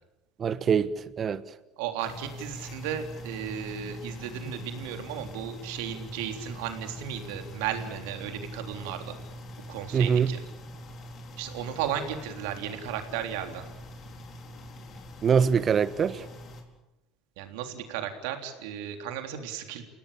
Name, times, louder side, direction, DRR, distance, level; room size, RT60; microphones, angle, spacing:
voice 1, 0.4-1.4 9.9-10.3 15.2-16.2, right 7 dB, 40° right, 1.4 m, -24 dB
voice 2, 1.8-9.1 9.7-10.4 11.4-13.6 17.4-19.8, right 9 dB, 70° right, 3.5 m, -35 dB
sound 1, 2.0-16.6, equal, 45° left, 4.5 m, -43 dB
30.0 x 17.5 x 8.8 m
hypercardioid pair, 70°, 0 cm